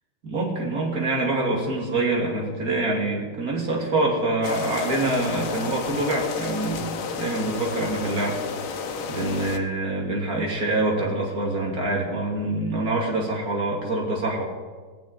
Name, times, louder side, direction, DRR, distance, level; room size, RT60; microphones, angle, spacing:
voice 1, 0.2-8.4 9.1-14.5, right 2 dB, 45° right, -1 dB, 3.2 m, -25 dB
sound 1, 4.4-9.6, left 5 dB, 85° left, 1.9 m, -31 dB
18.0 x 6.4 x 9.1 m, 1.5 s
omnidirectional pair, 2.3 m